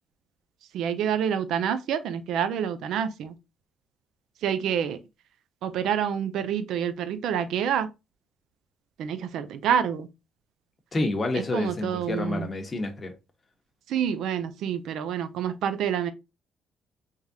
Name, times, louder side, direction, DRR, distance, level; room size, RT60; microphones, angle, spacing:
voice 1, 0.7-3.3 4.4-5.0 5.6-7.9 9.0-10.1 11.5-12.5 13.9-16.1, right 8 dB, 75° right, 0.4 m, -27 dB
voice 2, 10.9-13.1, left 2 dB, 25° left, 1.0 m, -29 dB
3.5 x 3.3 x 2.7 m
cardioid pair, 115°, 0 cm